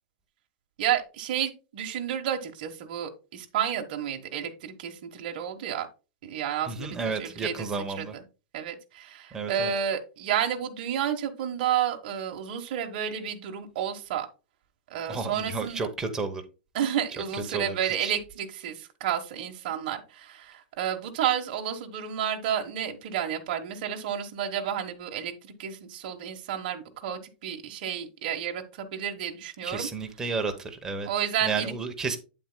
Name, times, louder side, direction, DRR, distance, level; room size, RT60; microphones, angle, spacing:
voice 1, 0.8-5.9 6.2-7.7 8.0-8.2 8.5-14.3 14.9-15.9 16.7-29.9 31.0-31.7, right 9 dB, 50° right, 3 dB, 1.2 m, -31 dB
voice 2, 6.7-8.1 9.3-9.7 15.1-16.4 17.1-18.1 29.6-31.1 31.4-32.2, right 4 dB, 10° right, 5 dB, 0.9 m, -32 dB
8.8 x 7.6 x 2.2 m, 0.31 s
supercardioid pair, 165°, 6 cm